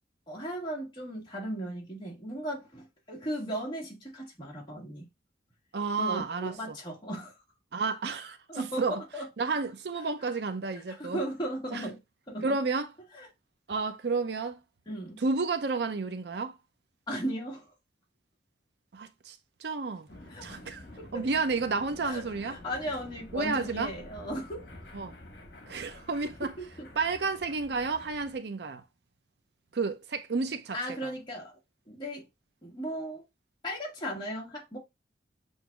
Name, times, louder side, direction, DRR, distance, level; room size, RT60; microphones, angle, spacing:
voice 1, 0.3-5.1 6.0-7.4 8.5-9.3 10.9-12.0 12.3-12.6 13.1-13.3 14.9-15.2 17.1-17.6 20.3-20.6 21.0-21.2 22.0-24.7 26.6-26.9 30.7-31.6 31.9-32.3 32.6-33.2 33.6-34.8, equal, 25° left, 1.7 m, -36 dB
voice 2, 5.7-6.8 7.7-9.0 9.4-11.2 11.7-11.9 12.4-12.9 13.7-14.6 15.2-16.5 18.9-20.1 20.4-20.8 21.1-22.6 23.3-23.9 24.9-25.1 25.7-26.5 27.0-28.8 29.7-31.1, right 4 dB, 65° right, 0.5 m, -31 dB
sound 1, 20.1-28.4, left 1 dB, 65° left, 1.4 m, -49 dB
7.8 x 2.7 x 2.3 m
head